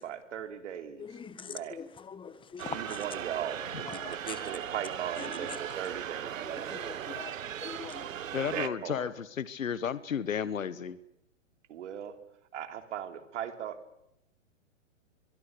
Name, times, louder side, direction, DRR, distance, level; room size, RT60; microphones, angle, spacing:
voice 1, 0.0-1.8 2.7-6.4 8.4-9.1 11.7-12.2 12.5-13.8, right 9 dB, 65° right, 3.5 m, -38 dB
voice 2, 1.0-3.0 3.9-4.4 6.7-7.3 7.6-8.1, left 6 dB, 15° left, 1.6 m, -43 dB
sound 1, 2.6-8.7, right 9 dB, 80° right, 1.1 m, -38 dB
voice 3, 8.3-11.0, left 8 dB, 90° left, 1.4 m, -33 dB
23.5 x 23.5 x 6.9 m
hypercardioid pair, 130°, 38 cm